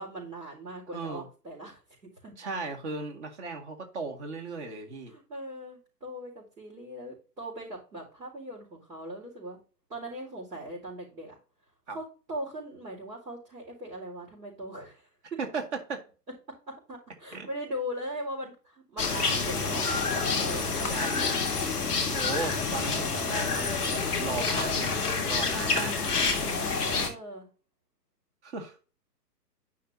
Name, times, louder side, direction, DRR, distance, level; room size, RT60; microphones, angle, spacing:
voice 1, 0.0-1.8 2.2-2.3 5.1-9.6 9.9-11.4 11.9-15.0 15.3-15.4 16.7-19.9 20.1-20.6 26.8-27.5, equal, 85° right, 4.5 m, -39 dB
voice 2, 0.9-1.3 2.4-5.1 11.9-12.0 15.4-16.0 17.3-17.5 20.9-21.4 22.1-26.0 28.4-28.8, right 4 dB, 45° right, 2.1 m, -36 dB
sound 1, 19.0-27.1, left 4 dB, ahead, 0.5 m, -28 dB
10.5 x 5.7 x 2.8 m
figure-of-eight pair, 135°, 49 cm